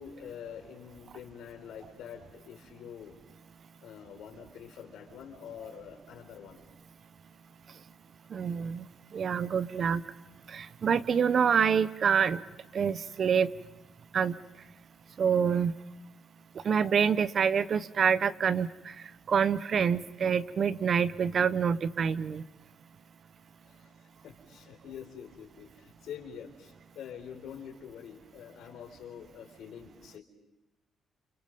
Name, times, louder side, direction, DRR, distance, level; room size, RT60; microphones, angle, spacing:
voice 1, 0.0-3.2 3.8-6.7 23.6-23.9 24.2-30.2, left 8 dB, 80° left, 5 dB, 4.3 m, -46 dB
voice 2, 8.3-10.0 10.5-12.4 12.7-13.5 14.1-14.3 15.2-15.7 16.5-22.4, right 7 dB, 50° right, 15 dB, 0.9 m, -27 dB
29.5 x 28.5 x 5.4 m, 0.94 s
cardioid pair, 90°, 0 cm